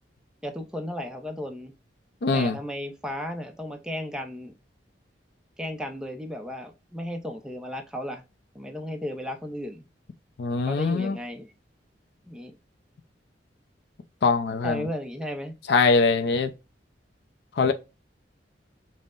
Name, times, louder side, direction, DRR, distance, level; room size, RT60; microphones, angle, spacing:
voice 1, 0.4-1.7 2.3-4.5 5.6-8.2 8.5-9.8 10.6-11.5 12.3-12.5 14.6-15.5, left 1 dB, 5° right, 0.5 m, -34 dB
voice 2, 2.2-2.6 10.4-11.2 14.2-14.8 15.7-16.5 17.6-17.7, left 4 dB, 65° left, 0.4 m, -22 dB
5.4 x 2.0 x 2.4 m
head